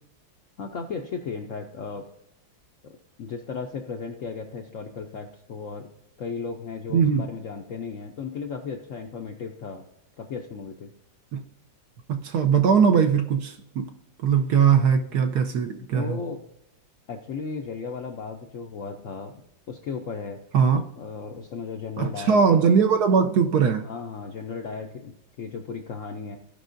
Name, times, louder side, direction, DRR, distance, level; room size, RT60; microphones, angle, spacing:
voice 1, 0.6-2.1 2.8-5.9 6.2-9.9 10.2-10.9 15.9-16.4 17.1-19.3 19.7-20.4 20.9-22.4 23.8-26.4, left 5 dB, 65° left, 0.7 m, -35 dB
voice 2, 6.9-7.3 11.3-11.4 12.1-13.9 14.2-16.2 20.5-20.8 22.0-23.8, right 6 dB, 70° right, 1.1 m, -20 dB
15.5 x 5.3 x 2.6 m
omnidirectional pair, 2.0 m